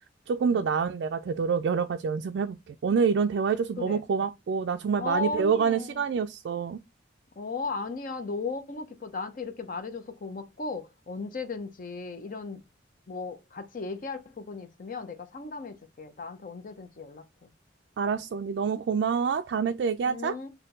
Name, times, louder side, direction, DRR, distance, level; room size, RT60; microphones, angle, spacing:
voice 1, 0.3-6.8 18.0-20.4, right 6 dB, 60° right, 0.3 m, -27 dB
voice 2, 5.0-6.0 7.4-12.6 13.1-17.5 20.1-20.5, left 4 dB, 45° left, 0.6 m, -36 dB
4.3 x 2.2 x 3.7 m
head